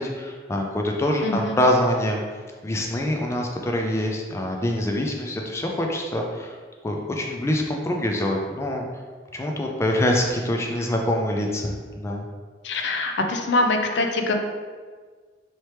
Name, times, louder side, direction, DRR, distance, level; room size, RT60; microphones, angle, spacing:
voice 1, 0.0-2.2 2.6-6.5 6.8-8.8 9.3-12.2, left 1 dB, 15° left, 1 dB, 0.3 m, -25 dB
voice 2, 1.2-1.6 12.6-14.3, left 2 dB, 75° left, 4 dB, 0.5 m, -24 dB
4.2 x 3.0 x 3.2 m, 1.5 s
head